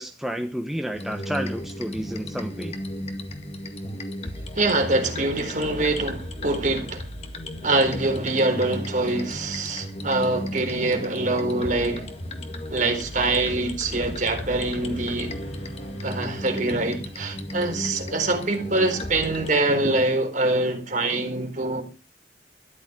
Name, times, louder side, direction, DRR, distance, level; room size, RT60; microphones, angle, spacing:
voice 1, 0.0-2.7, equal, ahead, 1.2 m, -31 dB
sound 1, 0.9-19.5, left 1 dB, 35° left, 2.0 m, -35 dB
voice 2, 4.5-7.0 7.6-12.1 12.7-15.3 16.0-21.8, right 2 dB, 45° right, 4.1 m, -24 dB
sound 2, 13.9-16.9, equal, 75° left, 6.1 m, -42 dB
13.5 x 11.5 x 6.2 m
head